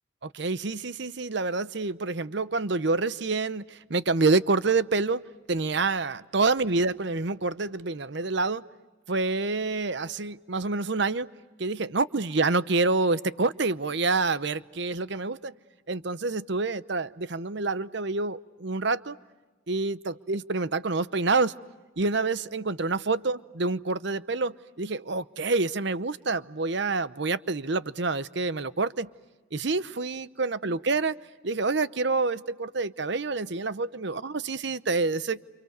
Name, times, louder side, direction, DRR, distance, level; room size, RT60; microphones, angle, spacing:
voice 1, 0.2-8.6 9.1-11.3 11.6-15.5 15.9-19.2 19.7-21.5 22.0-29.1 29.5-31.2 31.4-35.4, right 3 dB, 55° right, 0.8 m, -27 dB
29.5 x 28.5 x 6.7 m
head